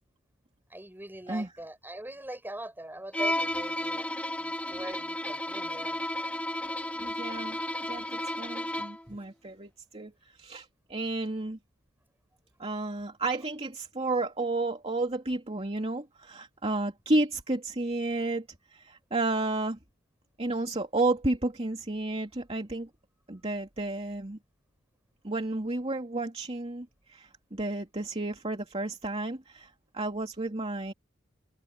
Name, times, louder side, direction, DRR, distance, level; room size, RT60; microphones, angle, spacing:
voice 1, 0.7-4.1 4.4-6.0 9.1-9.2, right 1 dB, 10° right, 7.2 m, -42 dB
Bowed string instrument, 3.1-9.1, left 1 dB, 5° left, 2.2 m, -33 dB
voice 2, 7.0-7.6 7.9-10.1 10.4-11.6 12.6-18.4 18.7-19.8 20.4-22.9 23.3-24.4 25.2-30.9, right 2 dB, 30° right, 2.7 m, -32 dB
head